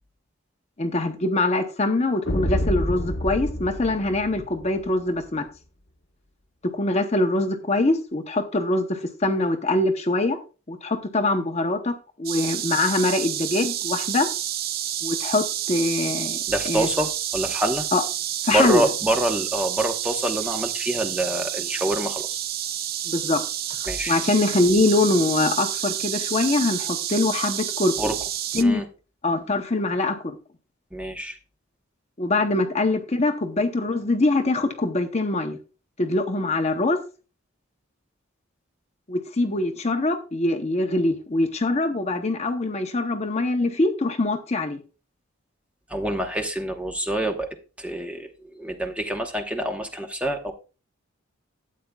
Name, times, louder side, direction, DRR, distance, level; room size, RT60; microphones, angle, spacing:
voice 1, 0.8-5.4 6.7-10.4 10.7-11.9 12.2-14.3 15.0-16.4 16.7-16.9 17.9-18.0 18.4-18.9 23.1-23.4 23.7-28.1 28.5-28.8 29.2-30.4 32.2-35.6 36.0-37.0 39.1-44.8, left 2 dB, 30° left, 0.7 m, -23 dB
sound 1, 2.3-4.9, left 1 dB, 55° left, 1.0 m, -28 dB
sound 2, 12.2-28.6, right 11 dB, 45° right, 0.5 m, -29 dB
voice 2, 16.5-17.9 18.5-22.4 23.9-24.2 28.0-28.2 28.5-28.9 30.9-31.4 45.9-47.5 47.8-50.5, right 1 dB, 5° right, 0.9 m, -26 dB
12.5 x 8.5 x 2.3 m
head